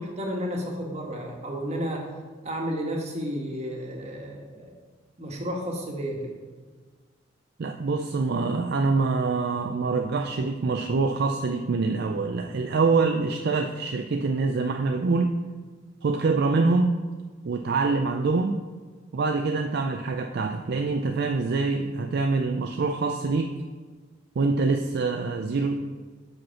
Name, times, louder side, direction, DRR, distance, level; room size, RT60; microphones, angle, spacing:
voice 1, 0.0-2.1 2.4-4.7 5.2-6.4, equal, 35° right, 0 dB, 1.4 m, -32 dB
voice 2, 7.6-15.4 16.0-17.0 17.4-18.6 19.1-23.5 24.4-25.8, right 3 dB, 55° right, 4 dB, 0.4 m, -25 dB
5.9 x 5.3 x 5.7 m, 1.4 s
head